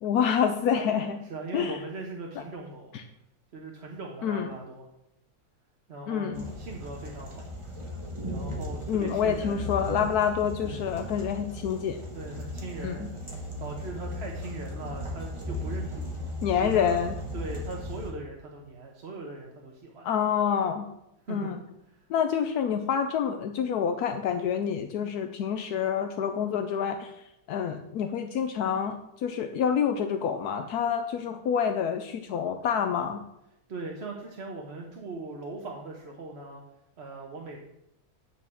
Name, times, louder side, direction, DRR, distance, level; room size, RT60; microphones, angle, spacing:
voice 1, 0.0-1.2 1.5-1.8 2.9-3.0 4.2-4.5 6.1-6.5 8.9-12.0 12.8-13.1 16.4-17.1 20.0-20.9 21.3-21.6 22.1-33.2, left 7 dB, 80° left, 7 dB, 1.2 m, -27 dB
voice 2, 1.3-2.9 3.5-4.9 5.9-7.6 8.3-9.7 10.6-10.9 12.1-13.1 13.6-16.0 16.6-17.0 17.3-20.1 21.3-21.5 21.9-22.0 33.7-36.6 37.0-37.6, right 3 dB, 45° right, 0 dB, 1.2 m, -39 dB
sound 1, 6.3-18.1, left 1 dB, 20° right, 1.5 m, -37 dB
9.1 x 4.7 x 7.2 m, 0.83 s
omnidirectional pair, 1.6 m